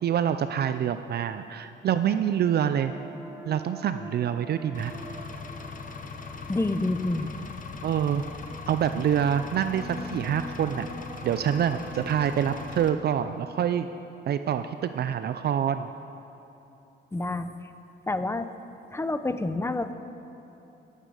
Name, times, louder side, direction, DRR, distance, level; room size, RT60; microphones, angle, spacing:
voice 1, 0.0-2.9 3.5-4.9 7.8-8.2 8.6-10.9 11.2-13.9 14.3-15.9, right 9 dB, 55° right, 10 dB, 0.4 m, -26 dB
sound 1, 1.9-15.5, right 1 dB, 15° right, 1.1 m, -45 dB
Engine, 4.7-12.9, left 4 dB, 40° left, 1.1 m, -40 dB
voice 2, 6.5-7.3 17.1-17.5 18.1-18.5 18.9-19.9, left 2 dB, 15° left, 10 dB, 0.6 m, -28 dB
18.0 x 8.3 x 4.9 m, 2.9 s
cardioid pair, 90°, 20 cm